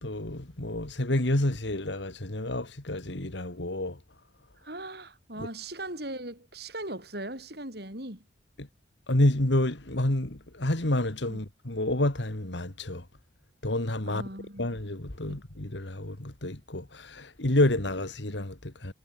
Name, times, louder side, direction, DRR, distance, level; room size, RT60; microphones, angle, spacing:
voice 1, 0.0-4.0 5.4-5.5 9.1-13.0 13.6-14.2 14.6-18.9, left 1 dB, 70° left, 2.3 m, -29 dB
voice 2, 4.6-8.2 11.3-11.4 14.1-14.8 15.2-15.4, right 1 dB, 55° right, 7.4 m, -39 dB
head